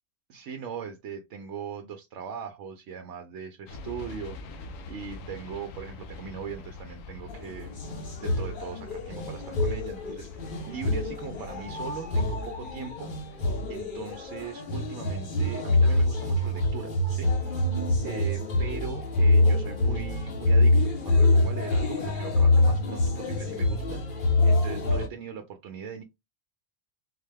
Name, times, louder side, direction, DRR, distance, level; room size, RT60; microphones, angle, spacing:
voice 1, 0.3-7.8 8.2-17.6 18.0-26.0, right 6 dB, 70° right, 0.8 m, -40 dB
sound 1, 3.7-14.5, left 3 dB, 80° left, 1.0 m, -44 dB
sound 2, 7.3-25.1, left 2 dB, 45° left, 0.9 m, -25 dB
4.0 x 2.2 x 3.2 m
omnidirectional pair, 1.3 m